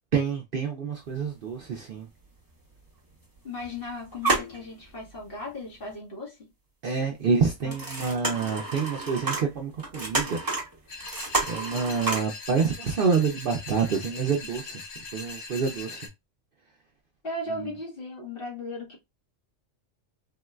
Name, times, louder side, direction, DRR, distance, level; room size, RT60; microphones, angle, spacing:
voice 1, 0.1-2.1 6.8-10.4 11.5-14.8 15.1-16.1, right 5 dB, 55° right, 0.6 m, -27 dB
sound 1, 1.0-1.1 1.4-1.6 2.5-2.6 3.1-3.8 4.0-5.2 5.7-5.8 7.4-12.2, right 2 dB, 20° right, 0.7 m, -30 dB
voice 2, 3.4-6.5 7.6-7.8 8.1-8.2 17.2-19.0, left 2 dB, 50° left, 1.2 m, -37 dB
sound 2, 10.9-16.1, left 4 dB, 70° left, 1.2 m, -41 dB
3.7 x 2.1 x 2.3 m
omnidirectional pair, 1.3 m